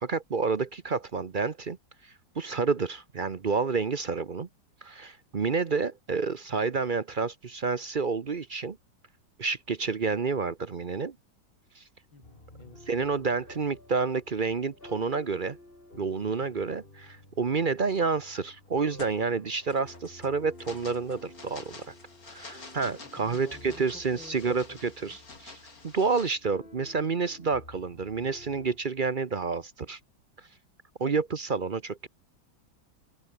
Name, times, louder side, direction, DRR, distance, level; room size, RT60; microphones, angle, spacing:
voice 1, 0.0-1.8 2.0-4.5 4.8-8.8 9.4-11.2 11.8-11.9 12.9-15.6 16.0-21.9 22.3-25.5 25.8-30.0 31.0-32.1, right 4 dB, 45° right, 0.6 m, -29 dB
voice 2, 12.1-12.8 23.2-25.2, left 3 dB, 80° left, 5.7 m, -51 dB
sound 1, 12.2-28.8, left 1 dB, 25° left, 5.3 m, -52 dB
sound 2, 17.9-18.2 18.6-26.3, left 3 dB, 50° left, 3.8 m, -49 dB
open air
omnidirectional pair, 2.1 m